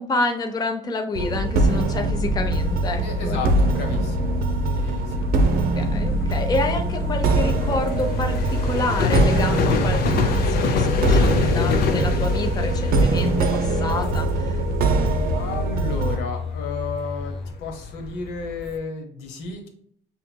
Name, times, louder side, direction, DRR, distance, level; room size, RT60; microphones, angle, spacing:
voice 1, 0.0-3.4 5.8-14.6, left 3 dB, 25° left, 5 dB, 0.5 m, -28 dB
sound 1, 1.1-16.2, right 2 dB, 60° right, 0.6 m, -22 dB
sound 2, 2.2-18.8, left 4 dB, 70° left, 0.6 m, -28 dB
voice 2, 3.0-4.4 4.6-5.2 15.3-19.7, left 4 dB, 85° left, 3 dB, 0.9 m, -32 dB
sound 3, 7.9-8.5 8.8-10.9 11.2-13.3 13.6-15.7 16.0-17.5, left 3 dB, 5° left, 1.0 m, -33 dB
5.6 x 2.8 x 2.2 m, 0.65 s
cardioid pair, 110°, 17 cm